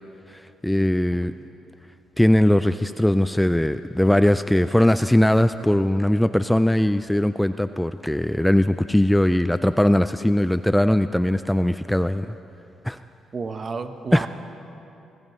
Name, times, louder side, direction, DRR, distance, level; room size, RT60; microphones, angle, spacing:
voice 1, 0.6-1.3 2.2-12.3 12.8-13.0 14.1-14.3, left 1 dB, 5° left, 11 dB, 0.3 m, -20 dB
voice 2, 13.3-14.3, right 4 dB, 40° right, 8 dB, 1.0 m, -31 dB
22.5 x 20.0 x 3.1 m, 2.8 s
cardioid pair, 90°, 0 cm